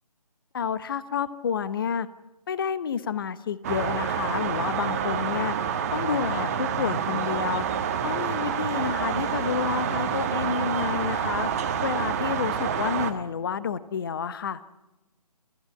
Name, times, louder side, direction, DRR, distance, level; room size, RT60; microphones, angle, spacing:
voice 1, 0.5-2.1 2.5-5.5 5.9-7.6 8.0-11.5 11.8-14.6, left 7 dB, 35° left, 15 dB, 1.0 m, -29 dB
sound 1, 3.6-13.1, right 7 dB, 25° right, 1.4 m, -28 dB
29.0 x 15.0 x 7.8 m, 1.0 s
figure-of-eight pair, 160°, 20 cm